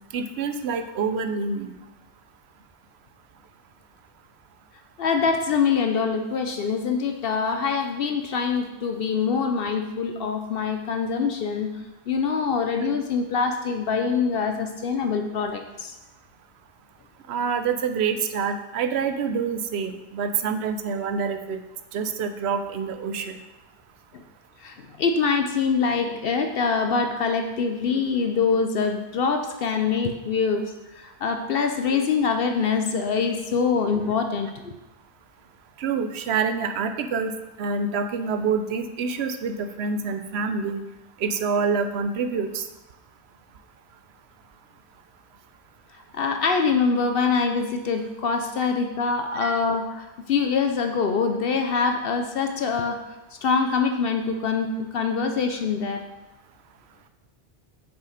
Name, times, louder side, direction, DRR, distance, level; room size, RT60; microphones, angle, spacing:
voice 1, 0.1-1.7 17.3-21.6 21.9-23.4 35.8-37.3 37.6-40.8 41.2-42.6 49.4-49.5, right 5 dB, 70° right, 8 dB, 0.8 m, -26 dB
voice 2, 5.0-11.7 12.1-15.9 24.1-24.2 24.6-34.7 46.1-53.0 53.4-56.0, left 5 dB, 65° left, 6 dB, 0.7 m, -24 dB
6.5 x 5.2 x 5.0 m, 1.0 s
omnidirectional pair, 1.2 m